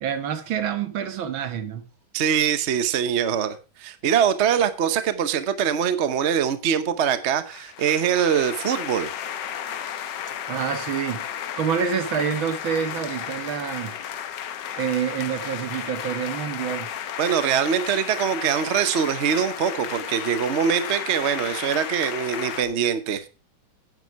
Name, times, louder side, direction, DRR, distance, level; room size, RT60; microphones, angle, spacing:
voice 1, 0.0-1.8 10.5-13.9 14.8-16.9, right 8 dB, 75° right, 1.9 m, -27 dB
voice 2, 2.1-9.1 17.2-23.2, right 8 dB, 45° right, 0.9 m, -23 dB
sound 1, 7.5-22.6, left 9 dB, 65° left, 1.4 m, -33 dB
9.7 x 9.7 x 4.6 m
omnidirectional pair, 2.2 m